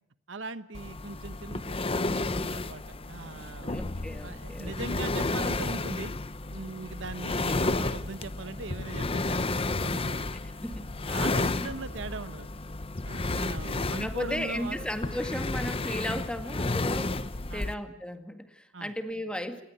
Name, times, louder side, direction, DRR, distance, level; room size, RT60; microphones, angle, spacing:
voice 1, 0.3-3.8 4.2-6.1 6.5-10.2 11.1-12.5 13.0-14.8 17.5-17.7 18.7-18.9, right 3 dB, 75° right, 13 dB, 1.1 m, -40 dB
sound 1, 0.7-17.7, left 2 dB, 30° left, 0.9 m, -32 dB
voice 2, 3.6-5.0 10.6-10.9 14.0-17.1 17.5-19.6, left 1 dB, 5° left, 8 dB, 1.9 m, -35 dB
27.0 x 20.5 x 8.0 m, 0.82 s
head